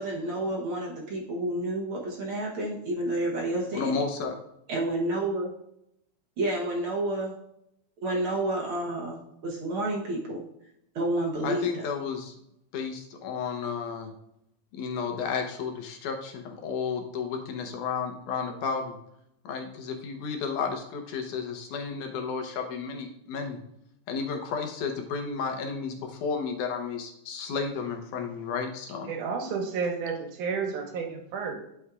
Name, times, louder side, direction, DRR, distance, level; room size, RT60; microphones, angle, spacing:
voice 1, 0.0-4.0 4.7-5.5 6.4-7.3 8.0-10.4 10.9-11.9, right 1 dB, 60° right, -1 dB, 1.5 m, -30 dB
voice 2, 3.7-4.3 11.4-12.3 12.7-14.1 14.7-19.0 19.4-23.6 24.1-29.1, left 5 dB, 80° left, 4 dB, 2.5 m, -32 dB
voice 3, 29.1-31.5, right 5 dB, 85° right, 2 dB, 2.6 m, -31 dB
11.0 x 6.3 x 2.4 m, 0.79 s
omnidirectional pair, 3.5 m